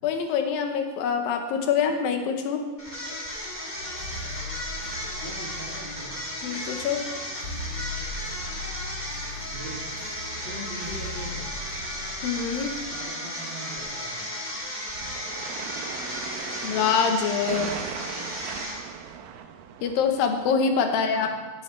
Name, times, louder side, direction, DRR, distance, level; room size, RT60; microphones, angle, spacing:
voice 1, 0.0-2.6 6.4-7.0 12.2-12.7 16.6-17.7 19.8-21.3, left 6 dB, 80° left, 5 dB, 2.7 m, -25 dB
sound 1, 2.8-19.1, equal, 20° left, 1.4 m, -35 dB
sound 2, 3.7-12.9, left 2 dB, 40° left, 1.6 m, -39 dB
voice 2, 5.2-6.1 9.5-10.0 10.3-11.5 12.8-14.2 18.1-18.3 21.1-21.3, right 1 dB, 20° right, -6 dB, 1.9 m, -41 dB
sound 3, 14.9-20.5, right 8 dB, 85° right, 2.4 m, -38 dB
16.0 x 9.4 x 3.2 m, 1.4 s
omnidirectional pair, 4.0 m